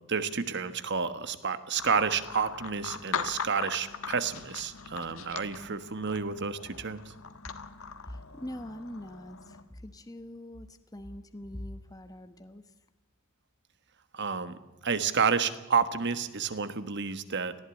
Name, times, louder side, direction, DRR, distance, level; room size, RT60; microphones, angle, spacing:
voice 1, 0.1-7.1 14.1-14.6 14.8-17.6, right 5 dB, 50° right, 12 dB, 1.4 m, -30 dB
sound 1, 1.8-9.6, left 6 dB, 65° left, 1.4 m, -40 dB
voice 2, 8.1-12.7, left 1 dB, 15° left, 9 dB, 1.1 m, -43 dB
19.0 x 15.0 x 9.8 m, 1.1 s
head